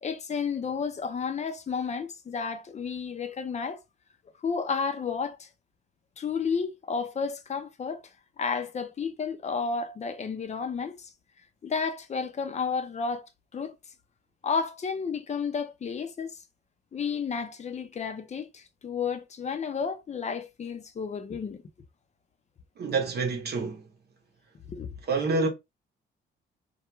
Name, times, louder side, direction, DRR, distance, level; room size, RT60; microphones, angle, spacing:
voice 1, 0.0-3.8 4.4-5.5 6.2-8.0 8.4-11.1 11.6-13.7 14.4-16.4 16.9-21.6 24.7-24.9, left 5 dB, 35° left, 0.5 m, -32 dB
voice 2, 22.8-23.9 25.1-25.5, right 4 dB, 55° right, 0.8 m, -27 dB
2.3 x 2.2 x 2.9 m
cardioid pair, 90°, 20 cm